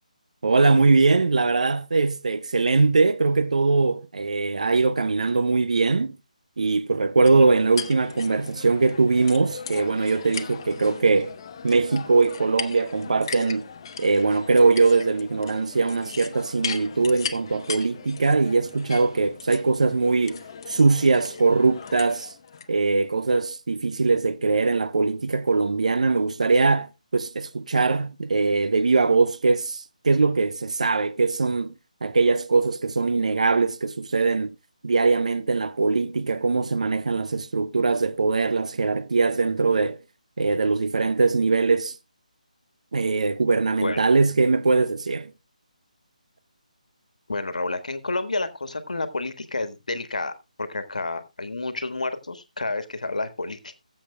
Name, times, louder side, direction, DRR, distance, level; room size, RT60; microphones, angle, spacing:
voice 1, 0.4-6.2 6.6-11.4 11.6-13.7 14.0-20.4 20.7-22.3 22.7-31.7 32.0-34.5 34.8-40.0 40.4-42.0 42.9-45.3, right 3 dB, 60° right, 0.6 m, -21 dB
sound 1, 7.3-22.7, left 6 dB, 35° left, 0.8 m, -38 dB
voice 2, 47.3-50.3 50.6-53.8, left 2 dB, 65° left, 1.5 m, -30 dB
21.5 x 7.3 x 2.2 m
figure-of-eight pair, 150°, 4 cm